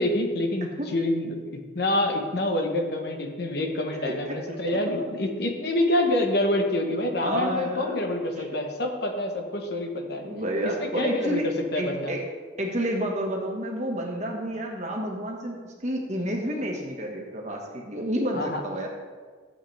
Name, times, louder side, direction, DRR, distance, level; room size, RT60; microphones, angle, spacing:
voice 1, 0.0-10.3 10.8-12.1 18.3-18.6, left 1 dB, 55° left, 3 dB, 1.1 m, -27 dB
voice 2, 4.0-5.0 7.2-8.0 10.2-11.5 11.7-12.2 12.6-18.9, equal, 35° right, 0 dB, 1.5 m, -30 dB
13.0 x 7.8 x 3.4 m, 1.6 s
head